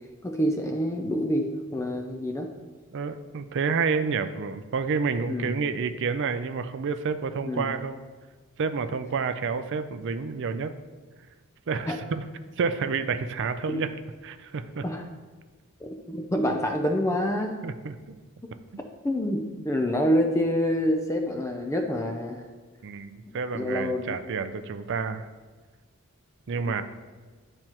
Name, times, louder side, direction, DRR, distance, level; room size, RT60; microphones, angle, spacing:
voice 1, 0.2-2.5 5.3-5.6 7.5-7.7 11.9-12.0 13.7-13.8 14.8-15.1 15.8-17.6 19.0-22.4 23.3-24.2 26.6-26.8, equal, 15° left, 3 dB, 0.4 m, -27 dB
voice 2, 2.9-8.0 8.6-10.7 11.7-12.2 12.6-13.9 14.2-14.8 17.6-18.2 22.8-25.3 26.5-26.8, right 5 dB, 55° right, 10 dB, 0.4 m, -29 dB
9.8 x 4.3 x 2.9 m, 1.4 s
head